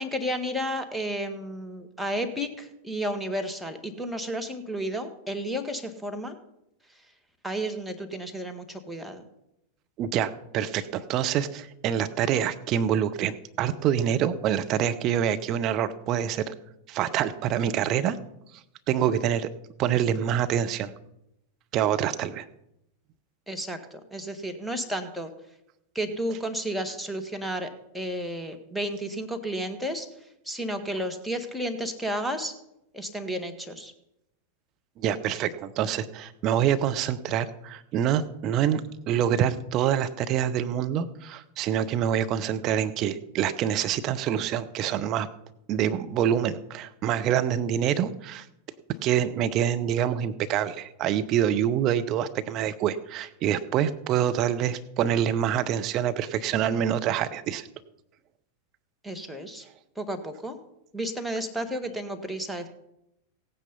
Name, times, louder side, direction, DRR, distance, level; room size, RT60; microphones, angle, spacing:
voice 1, 0.0-6.4 7.4-9.3 23.5-25.3 25.9-30.1 30.4-32.5 32.9-33.9 59.0-59.6 59.9-60.6 60.9-62.7, equal, ahead, 3 dB, 1.7 m, -32 dB
voice 2, 10.0-16.5 16.9-18.2 18.9-19.5 19.8-20.9 21.7-22.4 35.0-38.8 39.1-45.3 45.7-48.5 49.0-57.7, right 9 dB, 35° right, 10 dB, 0.9 m, -26 dB
16.5 x 9.2 x 5.5 m, 0.83 s
figure-of-eight pair, 90°, 0 cm